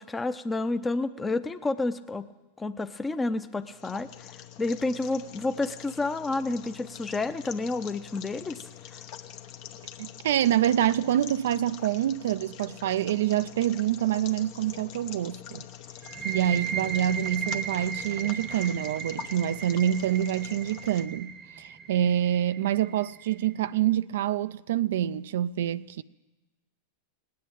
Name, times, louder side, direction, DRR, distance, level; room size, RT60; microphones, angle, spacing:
voice 1, 0.0-2.3 2.6-4.1 4.6-8.6 8.9-9.0, left 3 dB, 15° left, 0.7 m, -30 dB
sound 1, 3.6-21.0, left 10 dB, 55° left, 0.9 m, -45 dB
voice 2, 10.0-15.6 16.2-21.3 21.6-26.0, right 11 dB, 70° right, 0.4 m, -26 dB
sound 2, 16.0-23.5, right 7 dB, 30° right, 0.9 m, -36 dB
18.5 x 8.6 x 8.8 m
hypercardioid pair, 105°, 0 cm